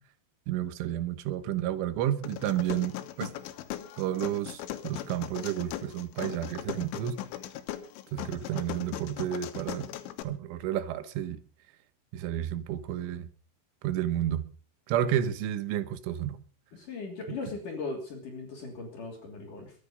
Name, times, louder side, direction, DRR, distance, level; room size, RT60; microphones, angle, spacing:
voice 1, 0.5-3.3 4.0-7.2 8.1-9.9 10.2-11.4 12.1-13.3 13.8-14.5 14.9-16.4 17.3-17.4, right 11 dB, 85° right, 3.6 m, -31 dB
sound 1, 2.2-10.2, left 13 dB, 90° left, 3.6 m, -39 dB
voice 2, 16.7-19.7, left 4 dB, 45° left, 4.2 m, -38 dB
22.5 x 9.6 x 5.2 m
omnidirectional pair, 5.5 m